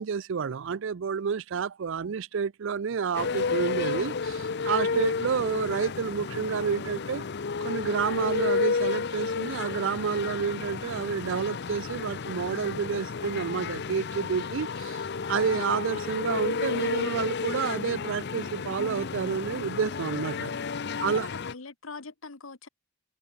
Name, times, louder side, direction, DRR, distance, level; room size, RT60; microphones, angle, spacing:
voice 1, 0.0-7.2 7.6-15.0 15.3-20.5 21.0-21.3, right 6 dB, 70° right, 0.5 m, -29 dB
sound 1, 3.1-21.5, left 5 dB, 55° left, 0.7 m, -32 dB
voice 2, 21.0-22.7, left 4 dB, 80° left, 1.4 m, -42 dB
head